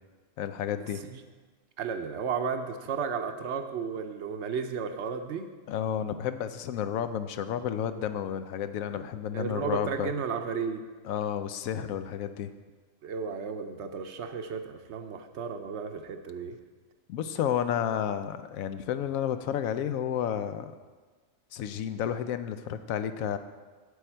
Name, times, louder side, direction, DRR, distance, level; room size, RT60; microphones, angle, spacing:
voice 1, 0.4-1.0 5.7-10.1 11.0-12.5 17.1-20.7 21.5-23.4, left 9 dB, 90° left, 11 dB, 1.0 m, -31 dB
voice 2, 1.8-5.5 9.3-10.8 13.0-16.6, right 6 dB, 65° right, 8 dB, 0.8 m, -33 dB
8.3 x 7.8 x 4.4 m, 1.4 s
omnidirectional pair, 1.4 m